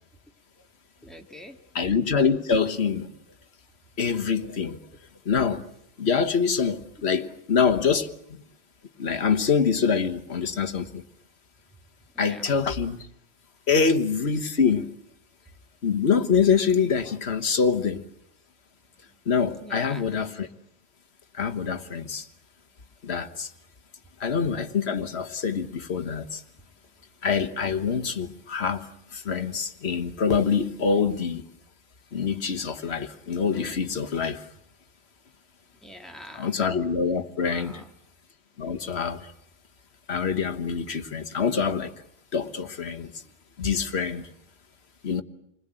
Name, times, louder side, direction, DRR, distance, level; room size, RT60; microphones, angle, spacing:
voice 1, 1.0-1.6 12.1-12.5 19.1-19.2 19.6-20.1 35.8-36.6 37.4-37.9, equal, ahead, 2.4 m, -44 dB
voice 2, 1.7-3.1 4.0-4.8 5.2-5.6 6.0-8.1 9.0-11.0 12.2-13.0 13.7-14.9 15.8-18.0 19.3-20.5 21.3-22.3 23.0-23.5 24.2-26.4 27.2-31.4 32.1-34.4 36.4-37.8 38.6-39.3 40.1-41.9 42.3-43.1 43.6-44.3 45.0-45.2, left 6 dB, 60° left, 1.6 m, -25 dB
28.0 x 21.0 x 9.0 m
omnidirectional pair, 1.2 m